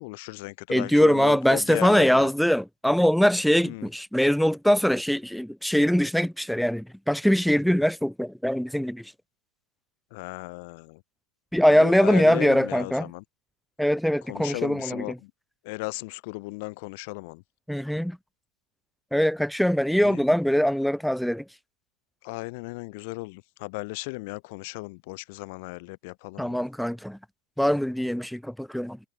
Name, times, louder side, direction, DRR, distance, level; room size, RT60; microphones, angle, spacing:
voice 1, 0.0-2.3 3.6-3.9 10.1-11.0 11.6-13.2 14.2-15.3 15.6-17.4 20.0-20.2 22.2-26.6, left 27 dB, 45° left, 2.1 m, -36 dB
voice 2, 0.7-9.0 11.5-13.1 13.8-15.0 17.7-18.2 19.1-21.4 26.4-27.2 27.6-29.0, equal, ahead, 0.8 m, -22 dB
figure-of-eight pair, 90°, 0 cm